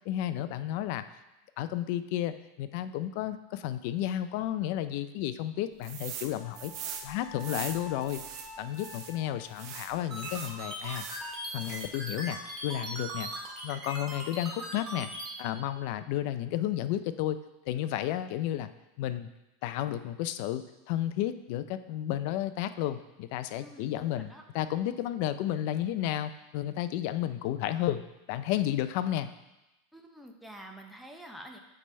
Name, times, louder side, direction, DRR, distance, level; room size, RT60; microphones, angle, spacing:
voice 1, 0.1-1.0 1.6-6.7 7.0-8.2 8.6-11.1 11.5-13.3 13.6-15.1 15.4-17.4 17.7-18.7 19.0-19.3 19.6-24.3 24.5-28.0 28.3-29.3, left 12 dB, 50° left, 12 dB, 0.3 m, -32 dB
sound 1, 5.8-6.3 6.5-9.1 9.5-11.2 11.6-12.1, right 8 dB, 40° right, 0.6 m, -42 dB
Wind instrument woodwind instrument, 6.4-10.7, left 3 dB, 20° left, 1.5 m, -49 dB
sound 2, 10.1-15.3, right 1 dB, 20° right, 1.8 m, -39 dB
voice 2, 23.6-24.4 29.9-31.6, equal, ahead, 1 dB, 0.6 m, -48 dB
8.6 x 3.3 x 4.3 m, 0.97 s
supercardioid pair, 160°, 0 cm